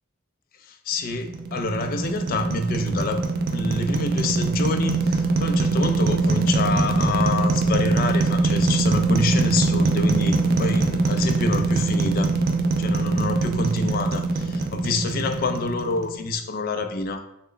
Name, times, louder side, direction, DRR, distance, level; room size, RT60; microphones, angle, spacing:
voice 1, 0.6-12.3 12.8-17.3, left 3 dB, 45° left, 7 dB, 0.3 m, -27 dB
sound 1, 1.1-16.3, right 3 dB, 45° right, 0.3 m, -23 dB
3.2 x 2.1 x 3.8 m, 0.82 s
head